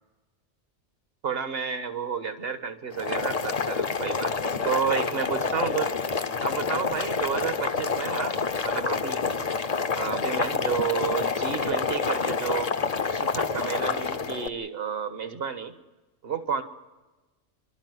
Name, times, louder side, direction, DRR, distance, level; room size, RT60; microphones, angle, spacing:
voice 1, 1.2-5.9 6.4-9.2 9.9-12.7 13.1-15.7 16.2-16.6, right 7 dB, 55° right, 9 dB, 1.5 m, -31 dB
Boiling, 2.9-14.5, left 5 dB, 35° left, 0.8 m, -28 dB
28.0 x 12.0 x 9.4 m, 1.2 s
omnidirectional pair, 1.2 m